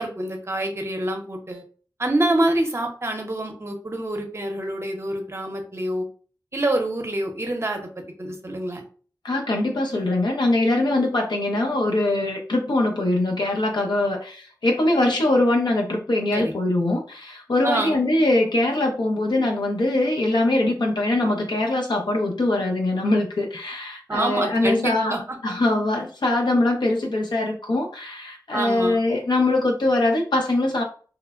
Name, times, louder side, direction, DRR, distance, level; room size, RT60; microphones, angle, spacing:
voice 1, 0.0-1.6 2.0-6.0 6.5-7.9 8.2-8.8 16.3-16.5 17.6-18.0 24.1-25.4 28.5-29.0, right 1 dB, 35° right, 3 dB, 0.6 m, -26 dB
voice 2, 9.2-25.1 25.4-30.8, left 2 dB, 85° left, 1 dB, 0.6 m, -22 dB
3.0 x 2.1 x 2.4 m, 0.40 s
wide cardioid pair, 70°, 7 cm